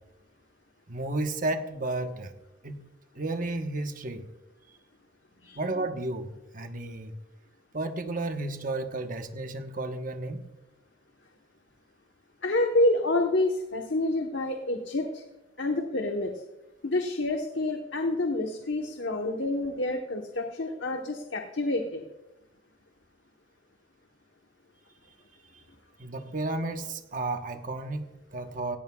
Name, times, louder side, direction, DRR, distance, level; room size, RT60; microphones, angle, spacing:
voice 1, 0.9-2.3 2.6-2.8 3.1-4.3 5.5-7.1 7.7-10.5 25.5-25.6 26.0-28.8, right 2 dB, 45° right, 6 dB, 1.1 m, -32 dB
voice 2, 12.4-15.2 15.6-16.3 16.8-22.1, left 2 dB, 80° left, 3 dB, 1.1 m, -28 dB
17.0 x 16.5 x 2.4 m, 0.99 s
head